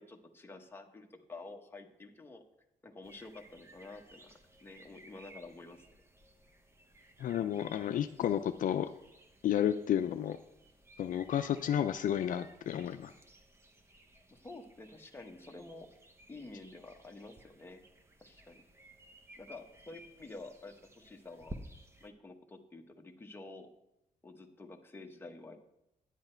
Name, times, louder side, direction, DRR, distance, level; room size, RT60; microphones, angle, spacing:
voice 1, 0.0-2.4 2.8-5.9 14.3-15.9 16.3-17.8 18.2-18.6 19.4-21.5 22.0-23.7 24.2-25.6, left 2 dB, 15° left, 3 dB, 1.0 m, -50 dB
sound 1, 3.0-22.1, right 1 dB, 20° right, 0.9 m, -56 dB
voice 2, 7.2-8.9 9.4-10.4 11.0-13.1, left 10 dB, 65° left, 9 dB, 0.4 m, -31 dB
9.9 x 8.0 x 4.4 m, 0.83 s
cardioid pair, 115°, 14 cm